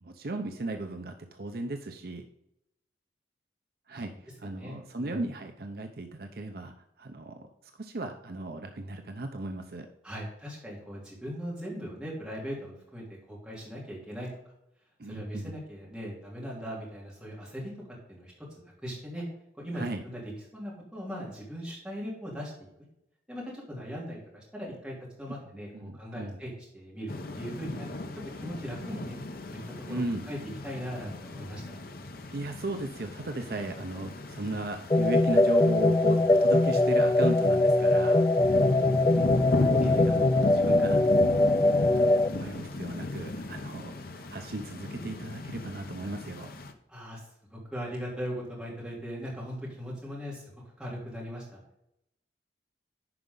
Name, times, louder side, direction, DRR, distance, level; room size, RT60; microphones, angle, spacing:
voice 1, 0.0-2.2 3.9-7.5 7.8-9.9 15.0-15.5 19.7-20.0 25.7-26.4 29.9-30.3 32.3-38.2 39.1-39.3 39.6-46.5, right 2 dB, 60° right, 5 dB, 0.7 m, -36 dB
voice 2, 4.6-5.2 10.0-14.3 15.1-17.7 18.1-18.3 18.8-19.2 19.5-20.2 20.5-22.5 23.3-28.0 28.4-29.2 29.5-29.6 29.9-30.0 30.3-30.4 30.6-31.8 39.8-40.0 46.9-47.2 47.5-50.4 50.8-51.6, equal, 5° right, -5 dB, 3.3 m, -39 dB
sound 1, 27.1-46.7, left 2 dB, 55° left, 0.8 m, -36 dB
sound 2, 34.9-42.3, left 2 dB, 20° left, 0.3 m, -22 dB
11.0 x 5.0 x 3.9 m, 0.82 s
head